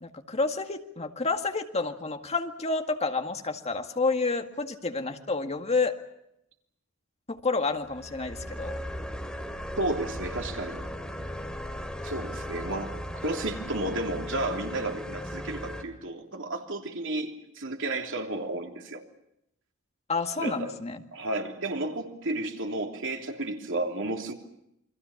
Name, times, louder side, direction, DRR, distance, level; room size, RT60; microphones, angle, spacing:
voice 1, 0.0-6.0 7.3-8.8 20.1-21.0, left 3 dB, 30° left, 6 dB, 1.9 m, -29 dB
sound 1, 7.8-15.8, equal, 5° left, 2.4 m, -37 dB
voice 2, 9.8-10.9 12.0-19.0 20.4-20.7 21.1-24.3, right 2 dB, 65° right, 3 dB, 3.1 m, -32 dB
28.5 x 22.5 x 7.2 m, 0.79 s
head